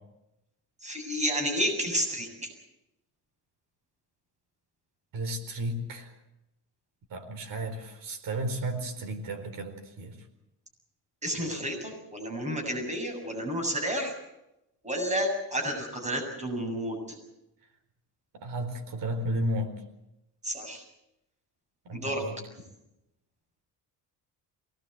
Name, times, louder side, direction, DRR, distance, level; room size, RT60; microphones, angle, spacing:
voice 1, 0.8-2.5 11.2-14.1 14.8-17.2 20.4-20.8 21.9-22.2, equal, 15° right, 3 dB, 7.6 m, -31 dB
voice 2, 5.1-6.1 7.1-10.2 18.3-19.8 21.8-22.4, right 1 dB, 55° right, 6 dB, 4.5 m, -33 dB
23.5 x 19.0 x 8.2 m, 0.91 s
cardioid pair, 140°, 39 cm